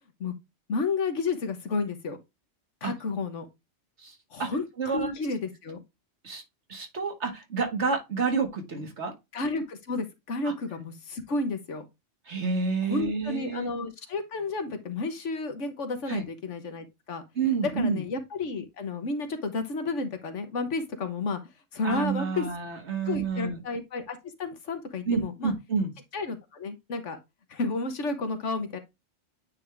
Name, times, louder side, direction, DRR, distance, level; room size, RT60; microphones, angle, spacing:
voice 1, 0.7-2.2 2.8-3.5 4.3-5.8 9.3-11.8 12.9-17.2 17.6-21.4 21.7-22.5 23.0-25.5 26.1-27.2 27.5-28.8, left 3 dB, 75° left, 1.5 m, -31 dB
voice 2, 4.0-4.5 4.8-5.1 6.2-6.4 6.7-9.1 10.4-10.5 12.3-13.7 16.1-16.2 17.4-18.0 21.8-23.6 25.1-25.9, right 5 dB, 65° right, 2.0 m, -29 dB
9.0 x 3.6 x 3.3 m
omnidirectional pair, 1.2 m